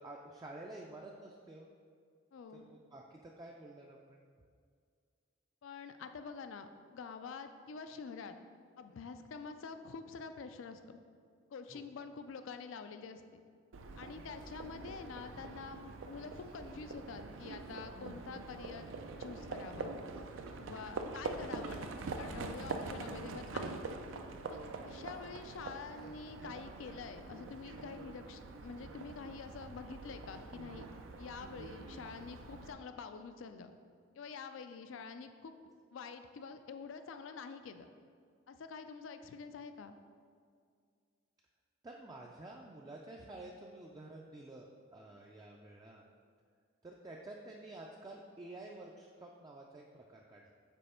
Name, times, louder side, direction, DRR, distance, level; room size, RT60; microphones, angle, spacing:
voice 1, 0.0-1.7 2.5-4.2 11.7-11.8 20.5-20.8 25.9-26.1 41.8-46.1 46.8-50.5, right 2 dB, 20° right, -1 dB, 0.3 m, -50 dB
voice 2, 2.3-2.6 5.6-8.4 8.8-11.0 11.5-13.4 14.0-20.0 20.6-23.8 24.5-30.9 31.2-33.7 34.2-35.6 35.9-37.9 38.5-39.9, left 5 dB, 85° left, 9 dB, 0.4 m, -47 dB
Livestock farm animals working animals, 13.7-32.7, right 3 dB, 85° right, 0.4 m, -44 dB
5.3 x 4.1 x 4.3 m, 2.1 s
head